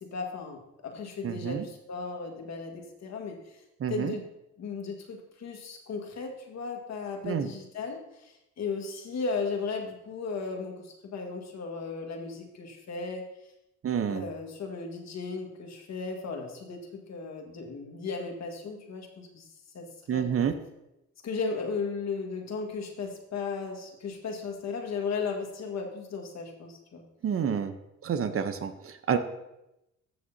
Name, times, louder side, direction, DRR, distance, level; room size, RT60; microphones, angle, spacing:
voice 1, 0.0-3.4 3.9-4.3 4.6-13.2 14.1-19.4 19.7-20.2 21.2-27.0, left 4 dB, 60° left, 2 dB, 1.7 m, -36 dB
voice 2, 1.2-1.7 3.8-4.1 7.2-7.5 13.8-14.3 20.1-20.5 27.2-27.8 28.0-29.2, right 8 dB, 45° right, 10 dB, 0.8 m, -29 dB
14.5 x 6.4 x 2.7 m, 0.89 s
cardioid pair, 90°, 30 cm